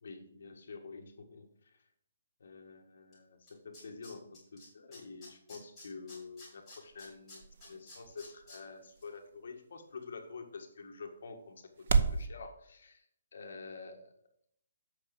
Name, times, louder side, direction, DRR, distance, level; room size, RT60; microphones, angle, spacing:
voice 1, 0.0-1.8 2.4-13.0 13.3-14.1, left 4 dB, 55° left, 4 dB, 1.6 m, -48 dB
Tools, 3.1-3.2 3.5-4.6 4.9-8.6 9.0-9.1, left 2 dB, 5° left, 4.5 m, -52 dB
sound 1, 6.0-12.3, right 5 dB, 45° right, 0.8 m, -37 dB
8.5 x 6.0 x 6.8 m, 0.71 s
hypercardioid pair, 180°, 0 cm